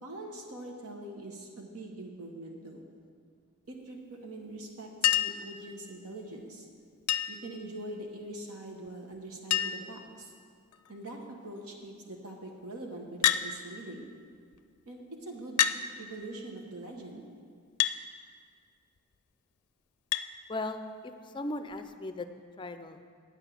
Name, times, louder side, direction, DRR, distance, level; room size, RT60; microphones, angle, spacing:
voice 1, 0.0-2.8 3.7-6.7 7.3-10.3 10.9-14.1 14.8-15.6 16.0-17.2, right 1 dB, 75° right, 1 dB, 1.1 m, -43 dB
Chink clink, 5.0-5.5 7.1-7.5 8.9-9.0 9.2-9.3 9.5-10.0 10.7-11.1 13.2-13.5 14.5-14.6 15.6-15.8 17.8-18.0 20.1-20.3 21.7-21.8, left 11 dB, 90° left, 0.4 m, -27 dB
voice 2, 20.5-22.3 22.6-23.0, left 2 dB, 20° left, 9 dB, 0.4 m, -37 dB
9.0 x 6.0 x 8.2 m, 2.1 s
head